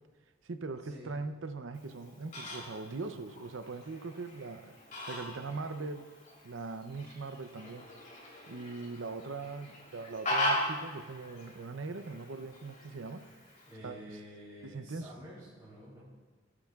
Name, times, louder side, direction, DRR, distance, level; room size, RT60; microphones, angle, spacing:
voice 1, 0.4-4.8 5.1-6.1 6.4-7.9 8.5-13.2 13.8-14.0 14.6-15.1, right 3 dB, 80° right, 9 dB, 0.7 m, -41 dB
Fowl, 1.7-13.7, left 1 dB, 40° left, 3.5 m, -40 dB
voice 2, 13.7-16.0, equal, 20° right, -10 dB, 3.5 m, -49 dB
22.0 x 8.6 x 2.4 m, 1.3 s
head